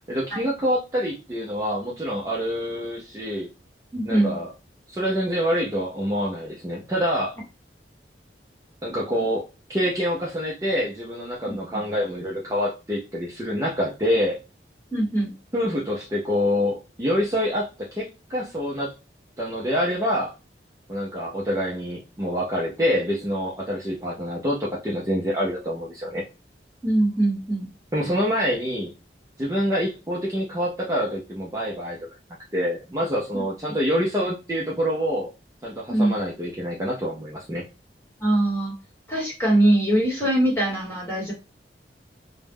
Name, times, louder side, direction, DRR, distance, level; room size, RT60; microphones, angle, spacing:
voice 1, 0.1-3.5 4.0-4.5 4.9-7.4 8.8-9.4 9.7-14.4 15.5-18.9 19.4-20.3 20.9-26.2 27.9-28.9 29.4-32.0 32.5-35.3 35.6-37.6, equal, 20° right, -5 dB, 0.4 m, -26 dB
voice 2, 3.9-4.3 11.5-11.8 14.9-15.3 26.8-27.7 35.9-36.1 38.2-38.7 39.1-41.3, right 1 dB, 15° left, -4 dB, 1.1 m, -22 dB
2.3 x 2.0 x 3.3 m, 0.29 s
head